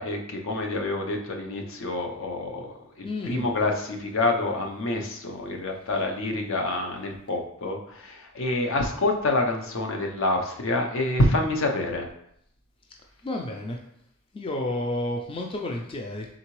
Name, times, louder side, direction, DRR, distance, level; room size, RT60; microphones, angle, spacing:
voice 1, 0.0-12.1, left 2 dB, 65° left, 2 dB, 0.6 m, -27 dB
voice 2, 3.0-3.5 13.2-13.8 14.3-16.3, left 1 dB, 25° left, 1 dB, 0.3 m, -31 dB
3.8 x 3.6 x 3.0 m, 0.74 s
head